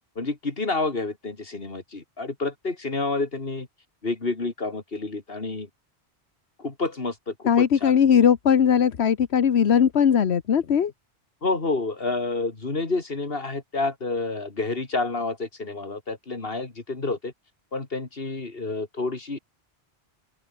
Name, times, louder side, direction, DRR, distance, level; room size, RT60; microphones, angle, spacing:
voice 1, 0.2-3.7 4.0-5.7 6.6-8.0 11.4-17.3 17.7-19.4, left 3 dB, 65° left, 3.0 m, -29 dB
voice 2, 7.5-10.9, left 8 dB, 85° left, 1.3 m, -19 dB
open air
omnidirectional pair, 1.1 m